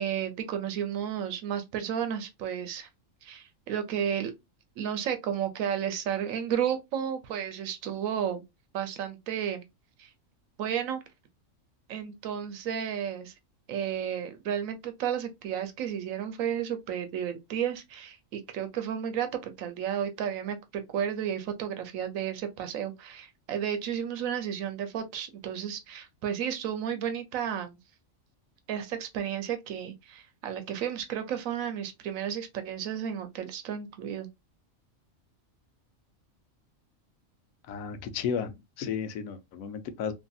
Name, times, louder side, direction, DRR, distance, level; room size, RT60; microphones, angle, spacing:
voice 1, 0.0-2.9 3.2-4.3 4.8-8.4 8.7-9.6 10.0-10.1 10.6-11.0 11.9-13.3 13.7-27.8 28.7-34.3, right 9 dB, 85° right, 1.0 m, -32 dB
voice 2, 37.7-40.1, left 7 dB, 90° left, 1.0 m, -33 dB
2.8 x 2.6 x 2.3 m
omnidirectional pair, 1.4 m